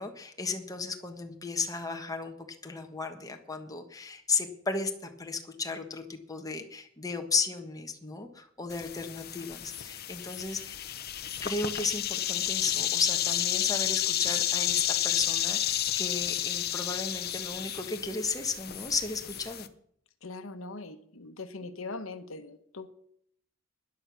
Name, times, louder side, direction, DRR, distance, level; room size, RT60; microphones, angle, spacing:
voice 1, 0.0-2.3 2.6-11.0 11.4-19.7, left 4 dB, 20° left, 4 dB, 1.4 m, -34 dB
sound 1, 8.7-19.7, left 11 dB, 50° left, 0.8 m, -31 dB
voice 2, 20.2-22.9, left 3 dB, 80° left, 10 dB, 1.2 m, -41 dB
13.0 x 10.5 x 6.2 m, 0.68 s
head